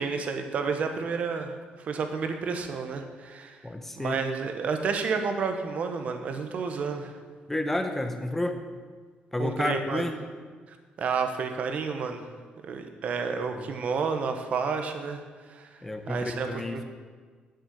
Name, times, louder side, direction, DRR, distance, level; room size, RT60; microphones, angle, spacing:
voice 1, 0.0-1.5 1.9-3.6 4.0-7.1 9.4-10.0 11.0-12.3 12.6-15.2 15.5-15.7 16.1-16.8, right 5 dB, 45° right, 6 dB, 1.1 m, -30 dB
voice 2, 3.6-4.2 7.5-8.6 9.3-10.1 13.5-13.7 15.8-16.8, left 1 dB, 10° left, 6 dB, 0.8 m, -30 dB
9.4 x 7.7 x 6.9 m, 1.5 s
cardioid pair, 175°, 3 cm